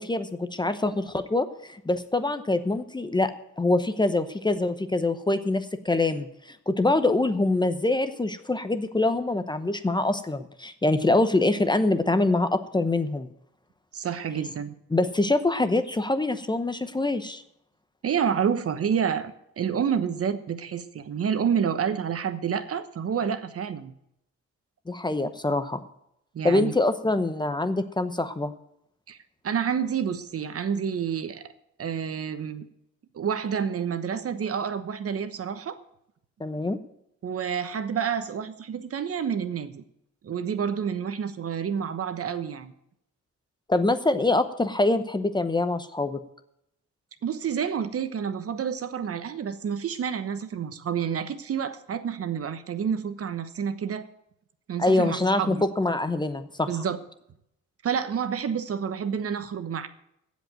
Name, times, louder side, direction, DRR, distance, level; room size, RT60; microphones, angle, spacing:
voice 1, 0.0-3.3 3.6-13.3 14.9-17.4 24.9-25.8 26.4-28.5 36.4-36.8 43.7-46.2 54.8-56.7, left 2 dB, 15° left, 10 dB, 0.8 m, -25 dB
voice 2, 13.9-14.7 18.0-23.9 26.3-26.7 29.1-29.2 29.4-31.5 31.8-32.7 33.1-35.8 37.2-39.8 40.2-42.7 47.2-54.1 54.7-55.7 56.7-57.0 57.8-59.9, right 7 dB, 50° right, 11 dB, 1.1 m, -29 dB
15.5 x 5.3 x 9.0 m, 0.78 s
cardioid pair, 90°, 30 cm